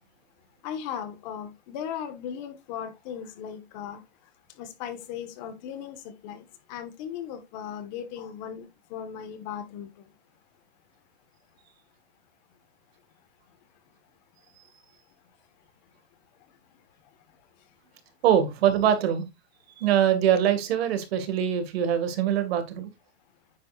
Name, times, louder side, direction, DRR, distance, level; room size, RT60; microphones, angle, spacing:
voice 1, 0.6-4.0 4.6-10.1, left 8 dB, 40° left, 1.7 m, -37 dB
voice 2, 18.2-19.2 19.8-22.9, right 9 dB, 65° right, 2.4 m, -23 dB
9.5 x 7.7 x 2.6 m
supercardioid pair, 170°, 33 cm